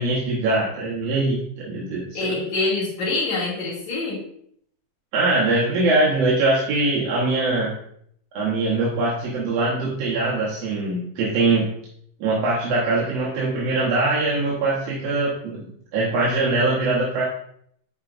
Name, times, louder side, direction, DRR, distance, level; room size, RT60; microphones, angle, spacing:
voice 1, 0.0-2.1 5.1-7.7 8.3-11.7 12.2-15.6 15.9-17.2, right 2 dB, 65° right, -5 dB, 2.0 m, -22 dB
voice 2, 2.1-4.2, left 3 dB, 70° left, -8 dB, 3.8 m, -25 dB
9.4 x 4.4 x 2.5 m, 0.67 s
omnidirectional pair, 3.4 m